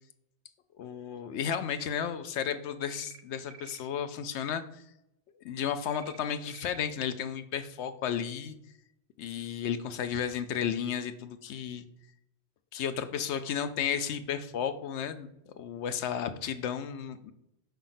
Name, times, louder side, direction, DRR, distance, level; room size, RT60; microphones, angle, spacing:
voice 1, 0.8-4.8 5.4-8.5 9.2-11.8 12.7-17.3, left 8 dB, 85° left, 10 dB, 0.9 m, -33 dB
sound 1, 2.9-3.2 3.5-3.8 5.9-6.2 6.5-6.8, right 8 dB, 70° right, 0.9 m, -50 dB
5.0 x 3.5 x 5.6 m, 0.81 s
omnidirectional pair, 1.1 m